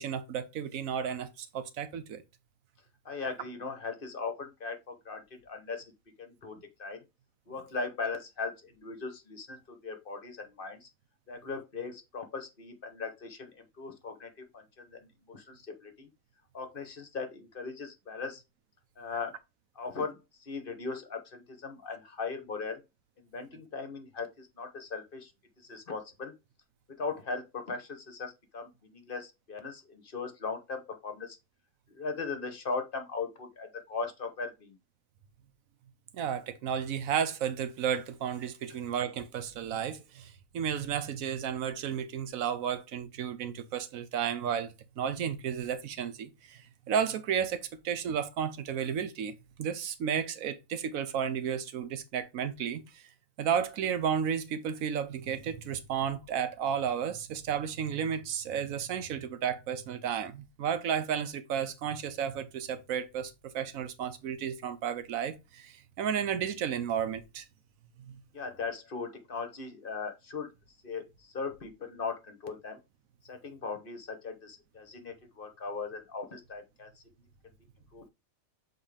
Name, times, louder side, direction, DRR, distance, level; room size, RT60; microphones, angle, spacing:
voice 1, 0.0-2.2 36.1-46.6 46.9-53.0 53.4-67.4 68.1-68.2, right 8 dB, 85° right, 1.2 m, -33 dB
voice 2, 3.0-5.8 6.2-7.0 7.5-10.9 11.3-16.1 16.5-18.4 19.0-19.3 19.7-22.8 23.2-25.3 25.6-26.3 27.0-31.4 31.9-34.8 68.3-70.5 70.8-72.8 73.2-77.0 77.9-78.1, left 4 dB, 45° left, 1.1 m, -39 dB
7.2 x 4.0 x 3.3 m
omnidirectional pair, 1.4 m